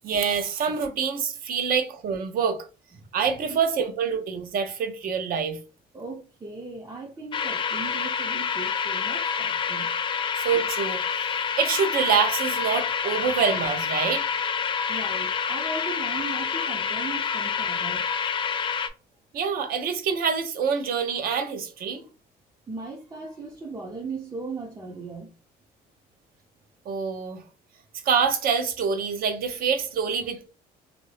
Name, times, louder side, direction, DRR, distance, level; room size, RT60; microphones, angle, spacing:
voice 1, 0.0-2.7 3.1-5.6 10.3-11.0 11.6-14.2 19.3-22.0 26.9-27.4 28.1-30.5, right 6 dB, 60° right, 0.7 m, -26 dB
voice 2, 5.9-9.9 14.9-18.1 22.7-25.3, right 3 dB, 20° right, 0.5 m, -37 dB
sound 1, 7.3-18.9, left 6 dB, 30° left, 0.4 m, -28 dB
2.6 x 2.6 x 3.2 m
cardioid pair, 110°, 17 cm